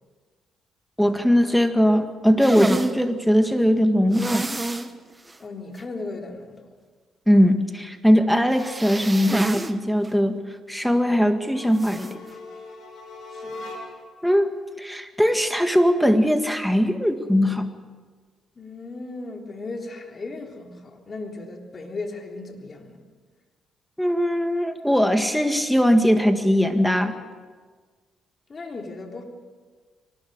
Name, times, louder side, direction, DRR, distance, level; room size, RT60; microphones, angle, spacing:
voice 1, 1.0-4.5 7.3-10.4 10.7-12.2 14.2-17.8 24.0-27.2, equal, ahead, 7 dB, 1.8 m, -20 dB
sound 1, 2.4-2.9 4.1-4.9 5.3-5.4 5.8-5.9 8.5-9.7 10.0-10.1 11.8-12.1, right 2 dB, 15° right, 1.3 m, -28 dB
voice 2, 5.4-6.6 13.3-13.6 18.6-23.0 28.5-29.2, left 3 dB, 35° left, 2 dB, 3.6 m, -36 dB
sound 2, 11.4-14.2, left 2 dB, 70° left, 5.1 m, -40 dB
23.5 x 19.5 x 6.6 m, 1.5 s
cardioid pair, 90°, 0 cm